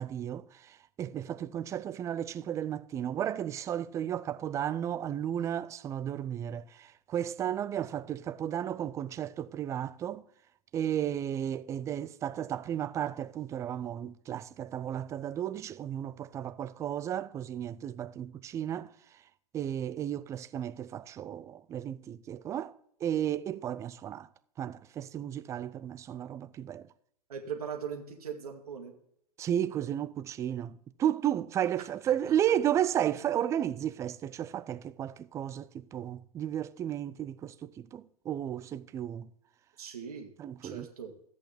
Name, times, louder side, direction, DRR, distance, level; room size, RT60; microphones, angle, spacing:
voice 1, 0.0-10.2 10.7-18.9 19.5-22.7 23.0-24.3 24.6-26.9 29.4-39.3 40.4-40.9, right 10 dB, 15° right, 0.4 m, -33 dB
voice 2, 27.3-28.9 33.1-33.2 39.8-40.3 40.6-41.3, right 7 dB, 70° right, 1.8 m, -40 dB
13.5 x 8.4 x 3.4 m
hypercardioid pair, 110°, 20 cm